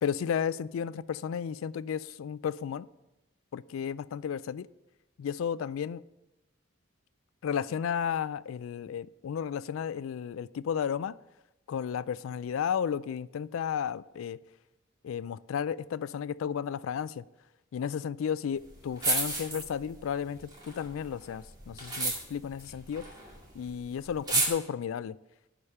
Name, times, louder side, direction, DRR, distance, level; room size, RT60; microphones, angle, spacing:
voice 1, 0.0-2.9 3.5-4.7 5.2-6.0 7.4-11.2 11.7-14.4 15.0-17.2 17.7-20.4 20.6-23.0 23.6-25.2, left 8 dB, 80° left, 0.3 m, -33 dB
sound 1, 18.6-18.7 19.0-20.0 20.4-23.5 23.7-23.8 24.1-24.5, right 2 dB, 20° right, 2.0 m, -30 dB
11.5 x 5.0 x 5.5 m
head